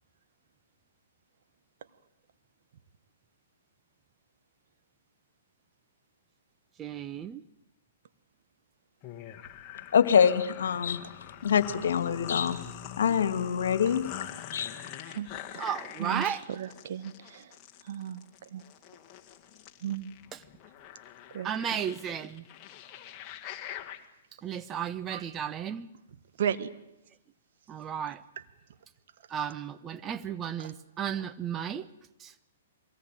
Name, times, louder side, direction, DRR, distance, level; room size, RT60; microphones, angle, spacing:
voice 1, 6.8-7.4 15.6-16.4 21.4-22.4 24.4-25.9 27.7-28.2 29.3-31.9 32.2-32.3, right 8 dB, 20° right, 12 dB, 0.9 m, -34 dB
sound 1, 9.0-24.0, left 11 dB, 30° left, 1.9 m, -44 dB
voice 2, 9.9-11.0 11.4-12.6 13.0-14.1 14.5-14.7, left 7 dB, 70° left, 12 dB, 1.9 m, -24 dB
voice 3, 16.0-17.5 17.9-18.2 18.5-18.6 19.8-20.1 21.3-21.8 25.1-25.3 26.4-26.7 30.6-30.7, right 9 dB, 60° right, 12 dB, 1.3 m, -35 dB
22.5 x 18.0 x 9.1 m, 0.87 s
hypercardioid pair, 125°, 0 cm